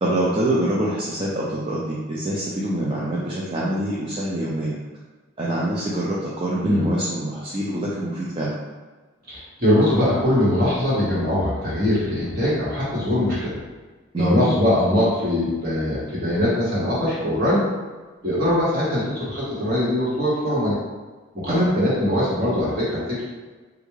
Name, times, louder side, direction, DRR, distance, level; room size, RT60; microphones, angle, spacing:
voice 1, 0.0-4.8 5.4-8.5 14.1-14.5 21.5-21.7, right 1 dB, 25° right, -6 dB, 0.3 m, -25 dB
voice 2, 9.3-13.6 14.2-17.6 18.2-20.8 21.3-23.2, left 1 dB, 45° right, -8 dB, 1.2 m, -21 dB
3.5 x 2.4 x 3.1 m, 1.3 s
head